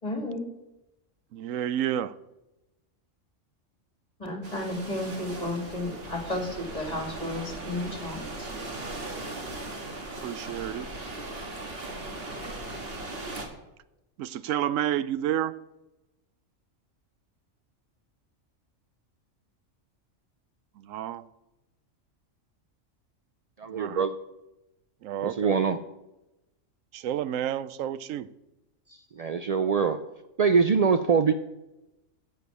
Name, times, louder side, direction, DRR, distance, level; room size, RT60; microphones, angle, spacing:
voice 1, 0.0-0.4 4.2-8.5, left 1 dB, 30° left, 2.5 m, -33 dB
voice 2, 1.3-2.2 10.2-10.9 14.2-15.6 20.8-21.2 23.7-24.0 25.0-25.6 26.9-28.3, right 11 dB, 90° right, 1.0 m, -30 dB
sound 1, 4.4-13.5, right 2 dB, 50° right, 1.9 m, -38 dB
voice 3, 23.6-24.1 25.2-25.8 28.9-30.0 30.4-31.3, right 5 dB, 65° right, 0.3 m, -24 dB
10.0 x 6.8 x 8.1 m
omnidirectional pair, 1.3 m